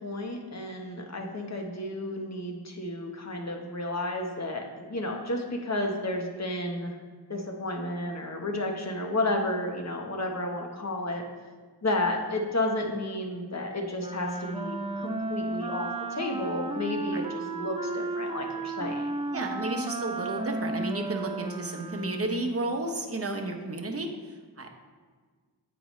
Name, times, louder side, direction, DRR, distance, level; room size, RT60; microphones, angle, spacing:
voice 1, 0.0-7.0 7.3-11.2 11.8-19.1, left 1 dB, 40° left, 1 dB, 1.1 m, -32 dB
Wind instrument woodwind instrument, 14.0-22.5, right 2 dB, 15° right, 0.4 m, -34 dB
voice 2, 19.3-24.1 24.6-24.7, right 2 dB, 35° right, 2 dB, 0.9 m, -32 dB
8.2 x 4.7 x 3.1 m, 1.5 s
cardioid pair, 50°, 40 cm